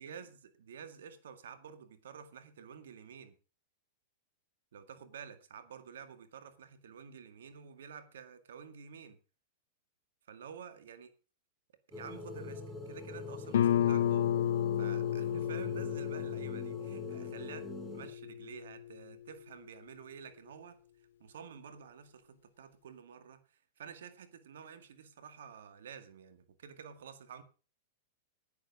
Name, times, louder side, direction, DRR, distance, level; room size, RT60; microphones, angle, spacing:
voice 1, 0.0-3.3 4.7-9.2 10.3-11.1 11.9-14.3 14.8-20.8 21.2-27.4, right 7 dB, 80° right, 2.0 m, -50 dB
sound 1, 11.9-18.1, left 2 dB, ahead, 4.0 m, -45 dB
Guitar, 13.5-18.9, left 10 dB, 75° left, 0.6 m, -32 dB
10.5 x 9.5 x 6.1 m
hypercardioid pair, 115°, 0 cm